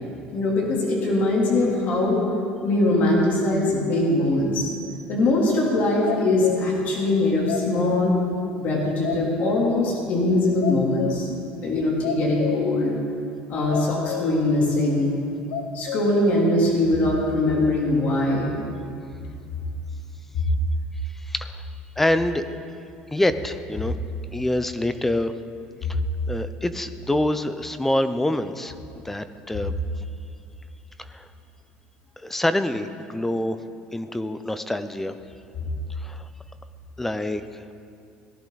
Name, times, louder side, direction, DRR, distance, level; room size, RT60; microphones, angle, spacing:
voice 1, 0.3-2.2 2.6-4.7 5.1-8.1 8.6-11.3 11.6-12.9 13.5-15.1 15.7-18.5 35.6-35.7, left 2 dB, 50° left, -3 dB, 3.1 m, -22 dB
sound 1, 6.0-6.9 7.1-8.3 8.6-8.7 9.0-9.9 10.1-10.3 10.6-11.4 11.8-12.9 13.1-13.2 13.7-14.5 14.9-15.0 15.5-16.3, left 8 dB, 90° left, 1.0 m, -31 dB
voice 2, 21.2-21.6 22.0-22.4 23.1-23.9 24.3-25.3 26.3-28.7 29.0-29.7 31.0-31.3 32.2-33.6 33.9-35.2 36.0-36.2 37.0-37.6, left 1 dB, 5° left, 11 dB, 0.5 m, -26 dB
18.5 x 10.5 x 4.0 m, 2.5 s
cardioid pair, 140°, 4 cm